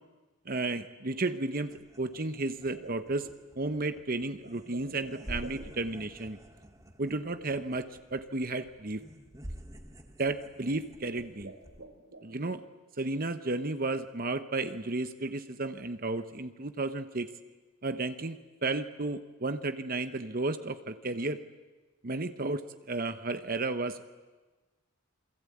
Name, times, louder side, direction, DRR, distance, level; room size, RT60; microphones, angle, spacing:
voice 1, 0.5-1.7 2.0-3.3 3.6-6.4 7.0-9.0 10.2-11.5 12.2-12.6 13.0-17.3 17.8-18.4 18.6-21.4 22.0-24.1, right 2 dB, 45° right, 9 dB, 1.0 m, -33 dB
sound 1, 1.6-11.8, equal, 15° right, 1.9 m, -48 dB
sound 2, 2.7-6.2 7.4-8.0 8.7-8.8 9.4-9.7 10.3-10.6 11.0-12.6, right 2 dB, 70° right, 3.8 m, -50 dB
28.0 x 23.0 x 8.6 m, 1.2 s
head